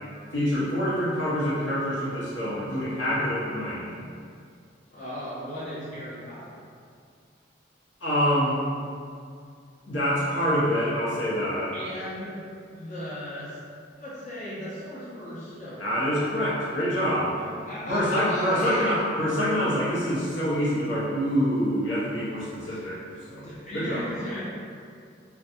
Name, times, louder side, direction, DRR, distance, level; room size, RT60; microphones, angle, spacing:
voice 1, 0.3-4.0 8.0-8.6 9.9-11.7 15.8-17.4 17.9-23.0 23.3-24.0, equal, 85° left, -9 dB, 0.8 m, -26 dB
voice 2, 4.9-6.5 11.7-12.4 12.7-13.6 14.0-15.8 17.4-19.7 22.5-22.9 23.4-24.5, equal, 40° left, -10 dB, 0.7 m, -37 dB
2.6 x 2.2 x 2.6 m, 2.3 s
head